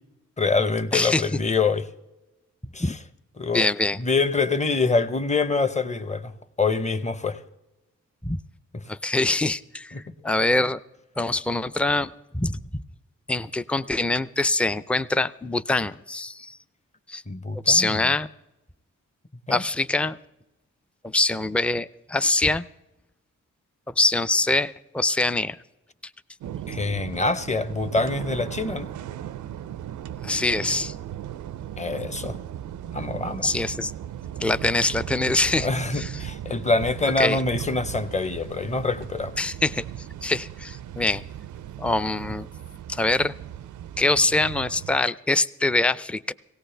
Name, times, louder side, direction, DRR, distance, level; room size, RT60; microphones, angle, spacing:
voice 1, 0.4-1.9 2.7-3.0 3.4-3.7 4.0-6.3 6.6-7.4 8.7-8.8 9.9-10.0 17.3-18.0 19.5-19.6 26.7-28.9 31.8-32.4 32.9-33.5 35.6-39.3, left 3 dB, 25° left, 0.8 m, -25 dB
voice 2, 0.9-1.3 2.8-2.9 3.5-4.0 8.2-8.4 8.9-9.9 10.2-10.8 11.2-12.8 13.3-16.6 17.1-17.2 17.7-18.3 19.5-20.2 21.0-22.6 23.9-25.6 30.2-30.9 33.4-33.9 34.4-35.7 35.9-36.1 37.2-37.4 39.4-39.8 40.2-41.2 41.8-42.5 42.9-43.3 44.0-46.3, left 2 dB, 5° left, 0.4 m, -24 dB
sound 1, 26.4-45.0, right 11 dB, 75° right, 0.5 m, -37 dB
17.5 x 17.0 x 3.3 m
cardioid pair, 55°, 30 cm